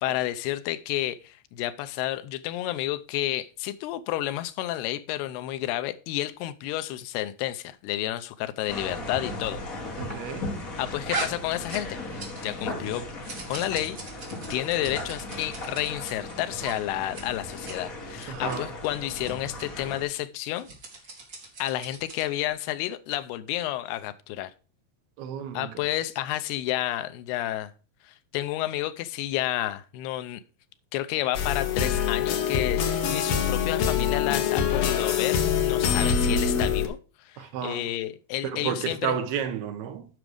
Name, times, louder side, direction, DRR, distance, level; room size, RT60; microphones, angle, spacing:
voice 1, 0.0-9.6 10.8-13.0 13.5-14.0 14.5-20.7 21.6-24.5 25.5-27.7 28.0-30.4 30.9-37.0 37.3-39.2, left 14 dB, 90° left, 2.7 m, -30 dB
sound 1, 8.7-20.0, left 2 dB, 50° left, 0.9 m, -37 dB
voice 2, 10.0-10.5 18.3-18.7 25.2-25.9 37.4-37.9 38.4-40.1, right 8 dB, 80° right, 2.9 m, -32 dB
sound 2, 11.1-12.6 12.8-16.1 16.6-16.8 17.0-17.2 17.5-17.8 18.2-18.6 19.2-19.3 19.6-19.7 20.5-22.3, right 3 dB, 30° right, 2.3 m, -38 dB
sound 3, 31.3-36.9, left 7 dB, 75° left, 1.5 m, -24 dB
9.3 x 6.1 x 4.9 m
omnidirectional pair, 4.5 m